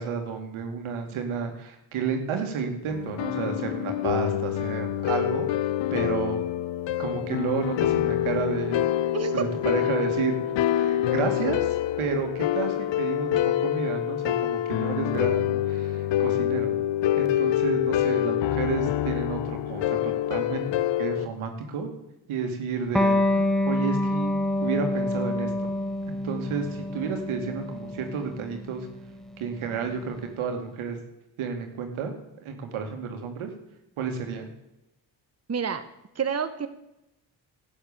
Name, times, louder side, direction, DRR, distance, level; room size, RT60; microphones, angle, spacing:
voice 1, 0.0-6.4 7.0-8.8 9.3-10.4 10.8-16.7 17.1-20.7 21.0-21.9 22.3-23.4 23.7-24.3 24.6-25.7 26.1-28.9 29.4-31.0 31.4-32.1 32.4-33.5 34.0-34.5, right 6 dB, 80° right, 4 dB, 2.3 m, -31 dB
sound 1, 2.9-21.3, left 12 dB, 60° left, 0.7 m, -26 dB
voice 2, 9.1-9.4 35.5-35.8 36.1-36.7, right 6 dB, 30° right, 9 dB, 1.2 m, -28 dB
Electric guitar, 22.9-30.1, left 1 dB, ahead, 1.3 m, -27 dB
12.0 x 8.7 x 7.1 m, 0.89 s
supercardioid pair, 50°, 49 cm